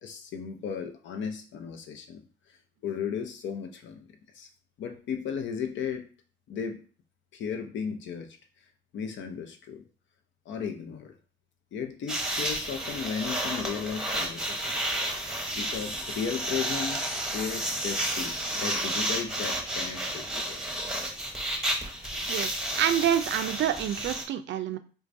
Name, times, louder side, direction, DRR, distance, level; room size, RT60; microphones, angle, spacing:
voice 1, 0.0-2.3 2.8-4.0 4.3-4.5 4.8-6.1 6.5-6.8 7.3-8.4 8.9-9.8 10.5-11.1 11.7-14.8 15.5-20.6, left 7 dB, 70° left, 6 dB, 0.6 m, -35 dB
sound 1, 12.1-24.2, right 1 dB, 5° right, 0.8 m, -31 dB
voice 2, 22.3-24.8, right 10 dB, 65° right, 10 dB, 0.4 m, -27 dB
4.6 x 2.3 x 2.6 m, 0.38 s
cardioid pair, 90°, 20 cm